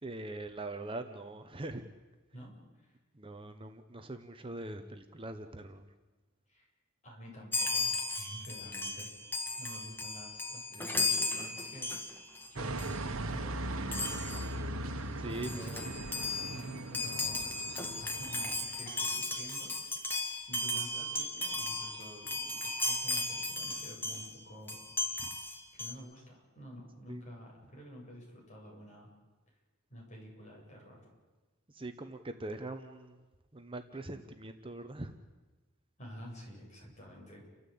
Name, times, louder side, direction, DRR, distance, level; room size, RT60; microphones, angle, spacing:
voice 1, 0.0-1.8 3.1-5.9 15.2-15.8 25.2-25.3 27.1-27.2 31.7-33.2 33.5-35.2, right 2 dB, 25° right, 7 dB, 1.0 m, -42 dB
voice 2, 2.3-3.0 6.5-6.7 7.0-9.1 9.6-11.9 12.5-12.8 13.3-14.5 15.5-17.5 17.9-19.7 20.5-24.8 25.7-29.1 29.9-31.0 36.0-37.4, equal, 35° left, -2 dB, 8.0 m, -49 dB
Chime, 7.5-12.5 12.8-13.0 13.9-14.5 15.1-15.2 15.3-24.3 24.7-25.9, left 2 dB, 10° left, 1.9 m, -36 dB
sound 1, 12.6-19.1, right 2 dB, 75° right, 1.5 m, -39 dB
30.0 x 13.5 x 8.7 m, 1.2 s
head